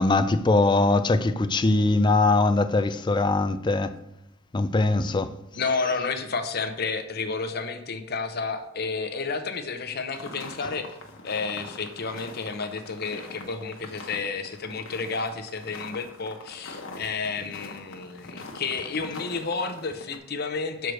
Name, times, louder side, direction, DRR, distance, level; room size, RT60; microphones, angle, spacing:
voice 1, 0.0-3.9 4.5-5.3, left 2 dB, 25° left, 0.4 m, -21 dB
voice 2, 5.6-11.0 11.2-20.9, left 4 dB, 50° left, 0.8 m, -31 dB
sound 1, 10.1-20.2, left 2 dB, 80° left, 1.1 m, -43 dB
6.6 x 4.6 x 6.2 m
head